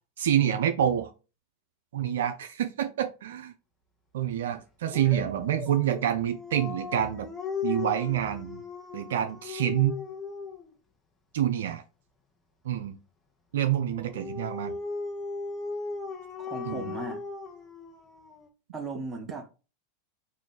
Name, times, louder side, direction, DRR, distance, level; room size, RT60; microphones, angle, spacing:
voice 1, 0.2-1.1 1.9-3.5 4.1-7.3 7.6-8.6 8.9-10.0 11.3-11.8 12.6-13.0 13.5-14.8 16.7-16.9, right 10 dB, 70° right, 0.3 m, -27 dB
Dog, 4.9-10.7 13.9-18.5, left 5 dB, 20° left, 0.9 m, -37 dB
voice 2, 16.4-17.2 18.7-19.5, right 3 dB, 20° right, 1.0 m, -37 dB
3.1 x 2.5 x 3.9 m
hypercardioid pair, 90°, 0 cm